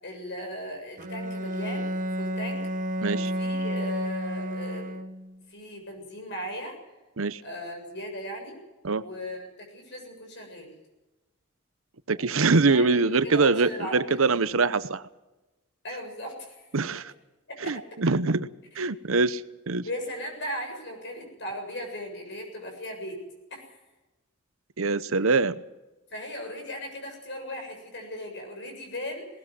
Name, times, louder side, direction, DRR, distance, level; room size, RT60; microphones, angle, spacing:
voice 1, 0.0-1.9 2.2-2.7 3.1-4.9 5.5-6.8 7.4-8.6 9.0-10.7 12.1-12.3 12.7-14.2 15.8-16.7 16.9-17.0 17.5-17.8 19.8-23.2 23.5-23.7 26.1-29.3, equal, 55° left, 3 dB, 7.4 m, -37 dB
Bowed string instrument, 1.0-5.4, right 1 dB, 40° right, 1.1 m, -31 dB
voice 2, 3.0-3.3 7.2-7.4 8.8-9.0 12.1-15.0 16.7-17.1 17.7-18.5 18.8-19.8 24.8-25.6, right 3 dB, 75° right, 14 dB, 0.9 m, -24 dB
20.0 x 19.0 x 7.7 m, 1.1 s
head